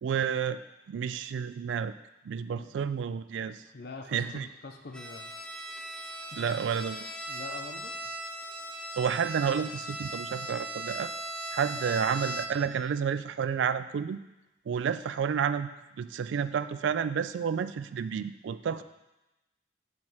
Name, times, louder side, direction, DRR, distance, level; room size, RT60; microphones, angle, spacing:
voice 1, 0.0-0.6 0.9-1.9 2.2-3.6 4.1-4.5 6.4-7.0 9.0-11.1 11.5-14.2 14.7-15.7 16.0-18.8, right 7 dB, 75° right, 13 dB, 0.3 m, -30 dB
voice 2, 2.6-2.9 3.7-5.3 6.3-6.4 7.3-8.1 18.7-18.8, left 3 dB, 55° left, 4 dB, 0.7 m, -45 dB
Bowed string instrument, 4.9-12.8, right 1 dB, 5° left, 0.4 m, -38 dB
7.6 x 3.2 x 5.5 m, 0.99 s
head